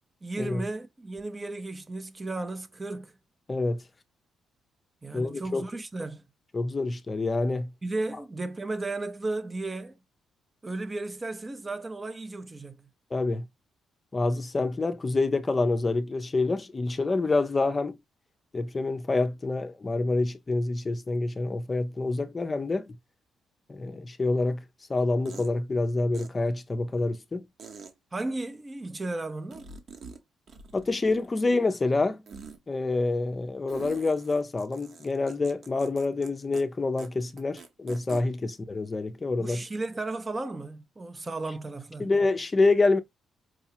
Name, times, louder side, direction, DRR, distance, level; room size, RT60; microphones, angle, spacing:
voice 1, 0.2-3.1 5.0-6.2 7.8-10.0 10.6-12.9 28.1-29.7 39.4-42.1, right 2 dB, 25° right, 0.6 m, -34 dB
voice 2, 3.5-3.8 5.1-5.6 6.5-7.7 13.1-13.5 14.1-18.0 18.5-23.0 23.7-24.6 24.9-27.4 30.7-32.2 32.7-39.7 42.0-43.0, left 3 dB, 25° left, 0.5 m, -27 dB
sound 1, 24.4-24.5 25.3-25.5 26.1-26.3 27.6-27.9 29.5-30.2 30.5-31.4 32.3-32.6 33.7-36.3 36.5-36.6 37.0-37.1 37.4-38.2, right 5 dB, 55° right, 1.0 m, -44 dB
4.7 x 2.3 x 2.8 m
cardioid pair, 90°, 0 cm